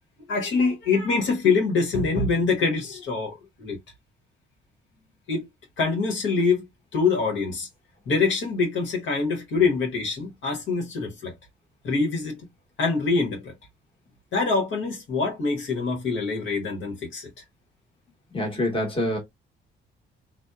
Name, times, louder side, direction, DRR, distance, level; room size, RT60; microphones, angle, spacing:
voice 1, 0.3-3.8 5.3-5.5 5.8-6.7 6.9-7.7 8.1-11.3 11.8-12.5 12.8-13.5 14.3-17.4, left 4 dB, 70° left, 1.1 m, -25 dB
voice 2, 18.3-19.2, left 1 dB, 25° left, 1.2 m, -25 dB
2.7 x 2.1 x 2.2 m
cardioid pair, 90°, 20 cm